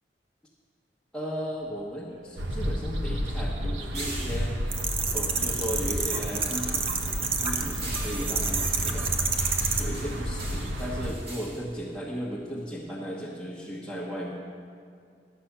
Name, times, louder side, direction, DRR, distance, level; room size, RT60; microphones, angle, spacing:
voice 1, 1.1-4.5 5.1-6.9 7.4-9.1 9.8-14.3, equal, 5° left, -7 dB, 1.0 m, -35 dB
sound 1, 1.6-6.1 6.4-12.9, right 2 dB, 60° right, 2.4 m, -44 dB
sound 2, 2.4-11.1, equal, 85° right, 1.0 m, -32 dB
sound 3, 4.7-9.8, right 5 dB, 30° right, 0.8 m, -29 dB
11.5 x 7.8 x 5.9 m, 2.3 s
head